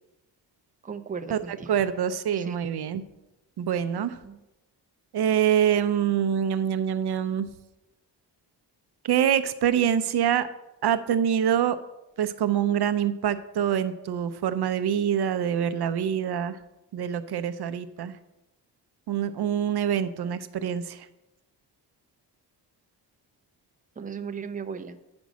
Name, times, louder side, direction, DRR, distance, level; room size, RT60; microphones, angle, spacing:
voice 1, 0.8-1.8 2.4-2.6 4.0-4.4 24.0-25.0, right 6 dB, 20° right, 6 dB, 0.6 m, -37 dB
voice 2, 1.7-3.0 3.6-4.2 5.1-7.5 9.0-10.5 10.8-11.8 12.2-16.6 16.9-18.2 19.1-21.1, right 9 dB, 65° right, 12 dB, 0.6 m, -25 dB
9.2 x 5.2 x 6.1 m, 0.96 s
wide cardioid pair, 120°, 42 cm